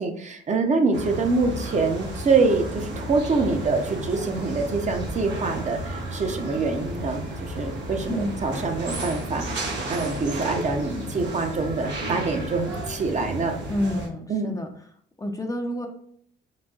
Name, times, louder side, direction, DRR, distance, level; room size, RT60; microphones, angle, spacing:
voice 1, 0.0-13.6 14.3-14.6, right 3 dB, 35° right, 5 dB, 0.6 m, -25 dB
sound 1, 0.9-14.1, right 1 dB, 60° right, 1.1 m, -33 dB
voice 2, 13.7-14.7 15.2-15.9, left 1 dB, 15° left, 4 dB, 0.4 m, -28 dB
3.9 x 2.7 x 2.3 m, 0.62 s
cardioid pair, 90°, 20 cm